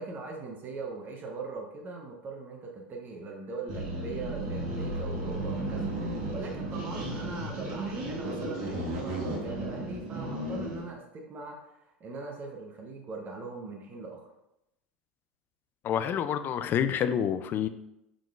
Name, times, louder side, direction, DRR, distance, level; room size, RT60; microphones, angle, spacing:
voice 1, 0.0-5.9 6.3-14.3, right 3 dB, 35° right, 1 dB, 0.9 m, -40 dB
sound 1, 3.7-10.9, right 1 dB, 50° right, 1.4 m, -34 dB
voice 2, 15.8-17.7, left 9 dB, 35° left, 11 dB, 0.3 m, -28 dB
5.0 x 3.7 x 2.4 m, 0.86 s
hypercardioid pair, 90°, 6 cm